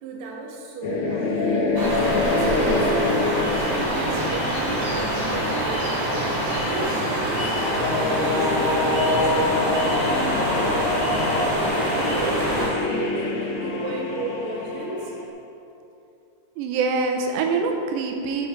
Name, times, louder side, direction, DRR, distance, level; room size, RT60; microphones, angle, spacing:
voice 1, 0.0-1.8 2.2-6.2 6.6-11.0 11.9-15.1, right 3 dB, 65° right, -2 dB, 1.8 m, -35 dB
sound 1, 0.8-5.4 7.5-15.3, left 3 dB, 75° left, 1.6 m, -25 dB
sound 2, 1.7-12.7, right 1 dB, 40° right, 3.0 m, -25 dB
sound 3, 6.0-12.8, left 2 dB, 60° left, 1.0 m, -40 dB
voice 2, 16.6-18.5, right 4 dB, 85° right, 3 dB, 3.0 m, -24 dB
10.0 x 7.1 x 4.4 m, 2.7 s
omnidirectional pair, 5.0 m